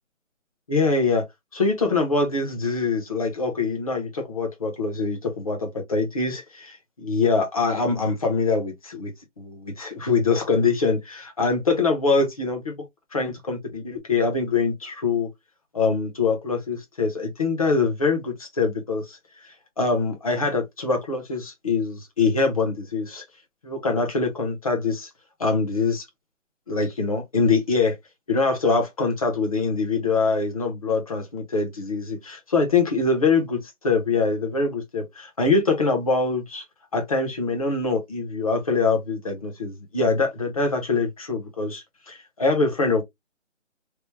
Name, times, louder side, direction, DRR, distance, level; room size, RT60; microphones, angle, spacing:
voice 1, 0.7-1.3 1.5-12.9 13.1-15.3 15.7-19.2 19.4-23.2 23.6-25.1 25.4-26.1 26.7-28.0 28.3-36.6 36.9-43.0, left 4 dB, 30° left, 0.9 m, -24 dB
3.0 x 2.1 x 3.2 m
hypercardioid pair, 170°, 37 cm